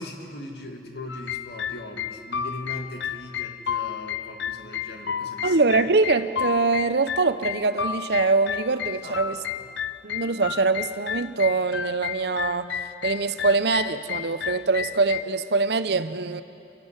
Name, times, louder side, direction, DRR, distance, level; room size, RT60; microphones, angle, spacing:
voice 1, 0.0-5.6 9.0-9.7, left 1 dB, 60° left, 3 dB, 2.1 m, -39 dB
sound 1, 1.1-15.2, left 9 dB, 80° left, 0.5 m, -32 dB
voice 2, 5.4-9.4 10.0-12.7 13.0-16.4, right 3 dB, 60° right, 12 dB, 0.7 m, -23 dB
28.5 x 12.0 x 8.0 m, 2.6 s
head